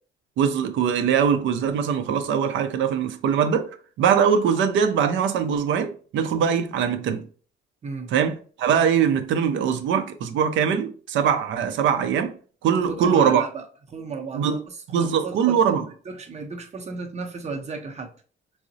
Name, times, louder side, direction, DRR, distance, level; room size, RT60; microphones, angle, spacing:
voice 1, 0.4-3.7 4.0-7.2 8.1-12.3 12.6-13.4 14.3-14.6 14.9-15.8, right 7 dB, 75° right, 0.4 m, -22 dB
voice 2, 12.8-18.1, right 4 dB, 35° right, 0.6 m, -35 dB
3.7 x 2.0 x 2.6 m
cardioid pair, 90°, 20 cm